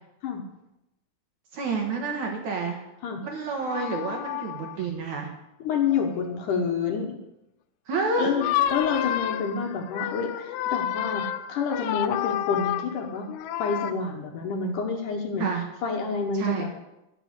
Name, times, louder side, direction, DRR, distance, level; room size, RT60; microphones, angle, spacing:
voice 1, 1.5-2.8 3.2-5.3 7.9-8.3 15.4-15.6 16.3-16.7, right 4 dB, 60° right, 1 dB, 2.3 m, -29 dB
sound 1, 3.5-4.8 5.9-6.2 8.1-13.9, left 12 dB, 80° left, 2.6 m, -30 dB
voice 2, 5.6-7.2 8.2-13.3 13.6-15.5 15.8-16.8, left 5 dB, 65° left, 2 dB, 2.3 m, -28 dB
13.5 x 6.6 x 8.0 m, 0.91 s
omnidirectional pair, 4.5 m